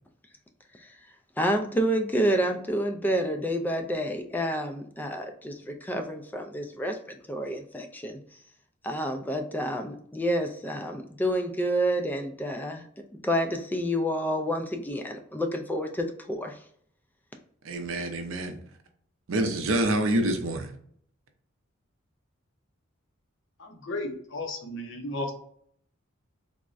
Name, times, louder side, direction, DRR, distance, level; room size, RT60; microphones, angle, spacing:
voice 1, 1.4-8.2 8.8-12.8 13.2-16.5, equal, 10° left, 5 dB, 0.3 m, -29 dB
voice 2, 17.6-18.6 19.3-20.7, right 1 dB, 75° right, 5 dB, 0.6 m, -27 dB
voice 3, 23.6-25.3, left 2 dB, 65° left, 3 dB, 0.6 m, -34 dB
3.4 x 2.0 x 2.4 m, 0.63 s
head